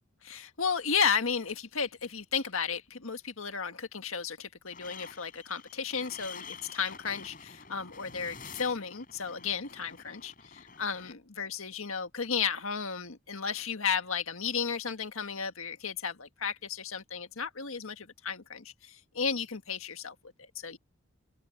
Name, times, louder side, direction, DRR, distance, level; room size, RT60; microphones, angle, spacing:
voice 1, 0.2-20.1 20.5-20.8, left 6 dB, 90° left, 1.7 m, -33 dB
sound 1, 4.7-11.1, left 6 dB, 40° left, 5.3 m, -48 dB
open air
head